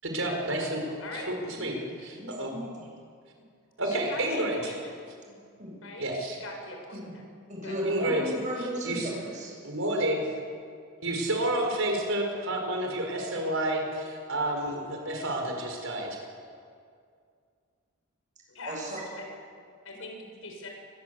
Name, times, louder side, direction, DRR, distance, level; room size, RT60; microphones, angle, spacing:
voice 1, 0.0-0.8 1.1-2.5 3.8-4.7 6.0-6.4 7.8-8.2 8.6-9.1 9.6-10.3 11.0-16.2, right 1 dB, 65° right, 2 dB, 5.5 m, -30 dB
voice 2, 1.0-1.3 2.1-2.2 3.8-4.9 5.8-7.2 7.6-7.8 18.5-19.2 19.8-20.7, left 2 dB, 65° left, 1 dB, 6.5 m, -41 dB
voice 3, 1.9-2.9 5.3-5.8 7.0-7.1 7.5-9.5 18.7-19.0, equal, 35° right, -3 dB, 7.9 m, -36 dB
24.5 x 21.5 x 8.5 m, 2.2 s
head